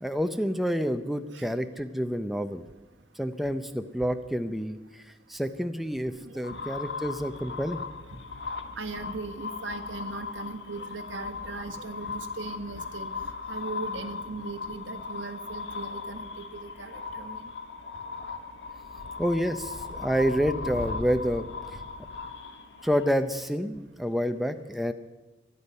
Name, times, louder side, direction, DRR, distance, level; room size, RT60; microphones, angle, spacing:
voice 1, 0.0-2.6 3.2-7.8 19.2-21.5 22.8-24.9, equal, ahead, 8 dB, 0.6 m, -28 dB
sound 1, 6.4-23.5, left 4 dB, 70° left, 1.5 m, -38 dB
voice 2, 8.8-13.1 13.5-17.4, right 3 dB, 90° right, 7 dB, 1.4 m, -39 dB
23.5 x 9.9 x 5.5 m, 1.1 s
head